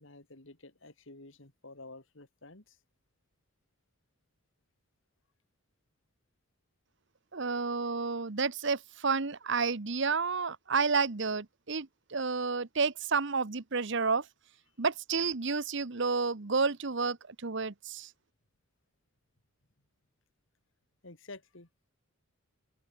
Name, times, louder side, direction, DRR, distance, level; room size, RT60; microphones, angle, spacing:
voice 1, 0.0-2.8 21.0-21.7, left 2 dB, 60° left, 2.5 m, -50 dB
voice 2, 7.3-14.2 14.8-17.2 17.4-18.1, right 4 dB, 55° right, 1.0 m, -30 dB
head